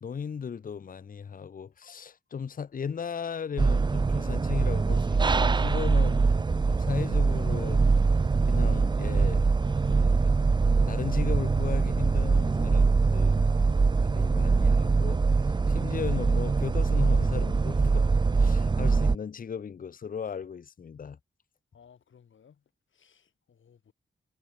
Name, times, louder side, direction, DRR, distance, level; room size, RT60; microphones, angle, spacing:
voice 1, 0.0-6.2 6.6-7.8 8.5-10.3 10.9-13.4 14.0-21.2, left 6 dB, 45° left, 0.7 m, -36 dB
sound 1, 3.6-19.2, right 4 dB, 25° right, 0.5 m, -23 dB
sound 2, 6.3-15.0, right 6 dB, 70° right, 6.2 m, -56 dB
voice 2, 21.7-22.6 22.9-23.9, left 7 dB, 80° left, 7.3 m, -59 dB
wide cardioid pair, 115°, 20 cm